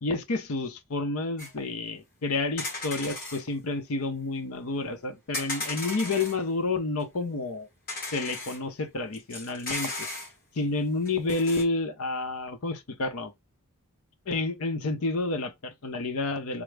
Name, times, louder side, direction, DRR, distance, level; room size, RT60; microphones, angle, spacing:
voice 1, 0.0-7.7 8.1-10.1 10.5-13.3 14.3-16.6, left 3 dB, 75° left, 0.7 m, -30 dB
sound 1, 1.4-1.5 2.6-3.4 5.3-6.4 7.0-7.1 7.9-8.6 9.1-10.3 11.1-11.6, left 2 dB, 40° left, 2.0 m, -35 dB
3.7 x 2.0 x 3.3 m
head